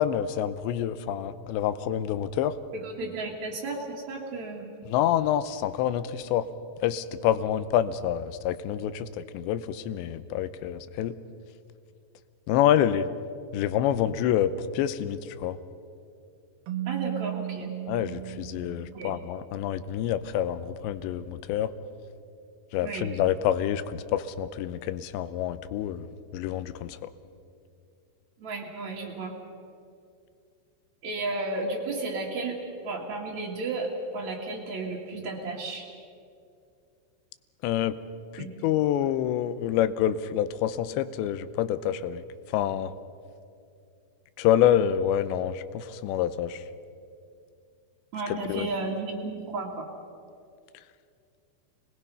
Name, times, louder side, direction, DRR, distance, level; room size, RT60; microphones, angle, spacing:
voice 1, 0.0-2.6 4.9-6.5 6.8-11.2 12.5-13.1 13.5-15.6 17.9-21.7 22.7-27.1 37.6-38.0 38.3-42.2 42.5-42.9 44.4-46.6 48.3-48.7, left 10 dB, 80° left, 13 dB, 3.0 m, -27 dB
voice 2, 2.7-4.7 16.9-17.7 18.9-19.2 22.8-23.1 28.4-29.3 31.0-35.9 38.4-38.5 48.1-49.9, right 3 dB, 45° right, -5 dB, 2.8 m, -33 dB
Keyboard (musical), 16.7-19.4, right 15 dB, 70° right, 2.7 m, -35 dB
30.0 x 21.0 x 5.6 m, 2.4 s
omnidirectional pair, 5.2 m